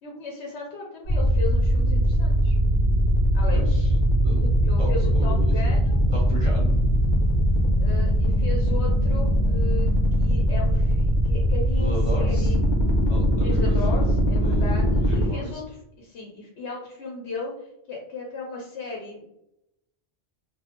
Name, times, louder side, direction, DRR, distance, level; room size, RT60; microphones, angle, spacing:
voice 1, 0.0-2.6 3.3-3.8 4.4-5.9 7.8-9.9 10.1-12.6 13.4-19.3, left 3 dB, 85° left, -1 dB, 1.0 m, -36 dB
sound 1, 1.0-15.3, equal, 50° left, 0.7 m, -21 dB
voice 2, 3.5-3.9 4.2-4.4 4.8-5.5 6.1-6.8 11.8-12.5 13.1-14.1 14.4-15.6, equal, 35° right, -3 dB, 0.6 m, -35 dB
3.1 x 2.0 x 3.3 m, 0.82 s
omnidirectional pair, 1.1 m